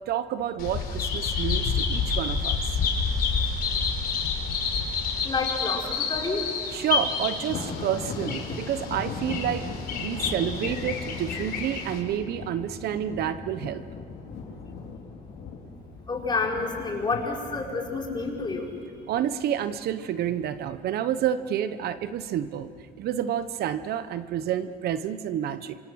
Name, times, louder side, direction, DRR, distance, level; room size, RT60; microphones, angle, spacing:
voice 1, 0.1-2.6 6.7-9.6 10.0-13.8 19.1-22.7 23.0-25.8, right 10 dB, 70° right, 12 dB, 1.0 m, -29 dB
Bird vocalization bird call bird song, 0.6-12.0, left 5 dB, 65° left, 4.7 m, -29 dB
voice 2, 5.2-6.4 16.1-18.7, left 4 dB, 25° left, 0 dB, 4.9 m, -29 dB
Thunder, 6.9-20.2 20.6-20.9 21.3-21.4 22.2-22.8, left 4 dB, 80° left, 4.0 m, -39 dB
28.0 x 25.5 x 6.4 m, 2.2 s
cardioid pair, 110°, 17 cm